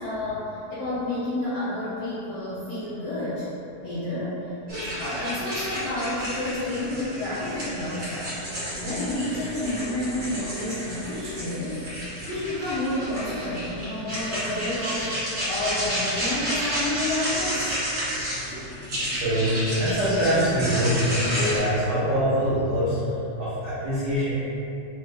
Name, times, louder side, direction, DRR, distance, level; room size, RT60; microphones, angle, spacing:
voice 1, 0.0-3.5 3.8-4.4 4.7-8.3 8.8-15.1 15.5-17.8, left 1 dB, 80° left, -12 dB, 1.4 m, -30 dB
sound 1, 4.7-21.6, equal, 55° right, 0.7 m, -31 dB
voice 2, 18.5-24.3, equal, 90° right, -14 dB, 0.9 m, -24 dB
5.3 x 2.1 x 3.3 m, 2.9 s
omnidirectional pair, 3.6 m